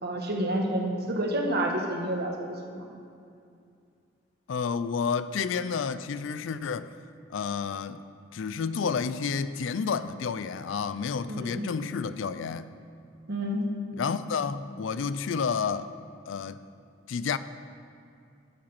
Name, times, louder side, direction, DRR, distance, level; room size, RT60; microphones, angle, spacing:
voice 1, 0.0-2.9 11.3-11.7 13.3-13.7, right 1 dB, 55° right, 1 dB, 1.5 m, -29 dB
voice 2, 4.5-6.9 7.3-8.0 8.3-12.7 14.0-15.9 16.3-16.6 17.1-17.4, left 6 dB, 70° left, 14 dB, 0.4 m, -30 dB
11.5 x 7.6 x 5.8 m, 2.4 s
head